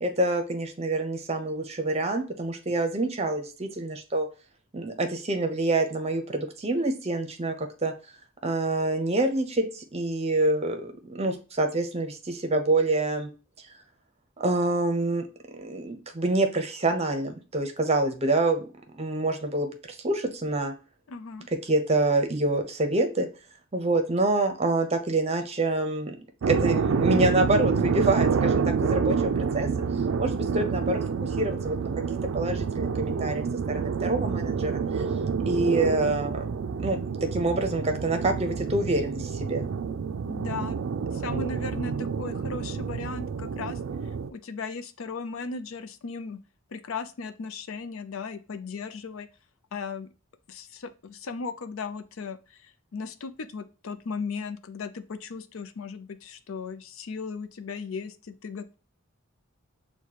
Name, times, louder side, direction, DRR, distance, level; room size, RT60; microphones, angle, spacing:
voice 1, 0.0-4.3 4.7-7.9 8.4-13.3 14.4-15.2 15.5-18.7 18.9-19.7 20.0-20.7 21.6-23.3 23.7-26.2 26.5-29.7 30.2-31.9 32.3-34.8 35.5-37.0 37.3-39.6, right 2 dB, 30° right, 6 dB, 0.7 m, -26 dB
voice 2, 21.1-21.5 40.3-40.8 41.1-43.8 44.3-46.4 46.7-49.3 49.7-50.1 50.5-58.7, left 4 dB, 75° left, 11 dB, 0.5 m, -36 dB
sound 1, 26.4-44.3, right 5 dB, 65° right, 0.4 m, -28 dB
6.5 x 2.2 x 2.8 m, 0.34 s
head